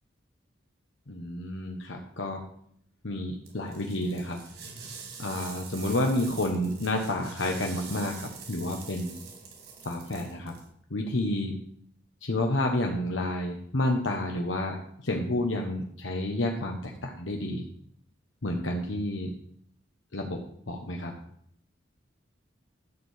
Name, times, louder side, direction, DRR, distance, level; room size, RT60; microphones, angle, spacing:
voice 1, 1.1-2.4 3.0-4.4 5.2-9.1 9.8-10.5 10.9-11.5 12.2-17.7 18.4-19.3 20.1-21.1, left 1 dB, 90° left, 1 dB, 1.3 m, -30 dB
sound 1, 3.4-10.7, right 5 dB, 65° right, 3.7 m, -45 dB
12.5 x 4.7 x 8.2 m, 0.68 s
head